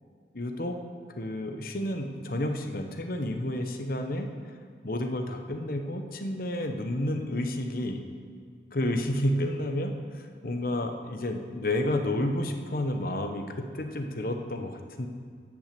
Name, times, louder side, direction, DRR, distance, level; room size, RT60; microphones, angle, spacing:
voice 1, 0.3-0.8 1.2-4.6 4.8-8.0 8.7-13.5 13.7-15.1, left 1 dB, 50° left, 5 dB, 0.9 m, -30 dB
11.0 x 6.1 x 7.7 m, 2.1 s
head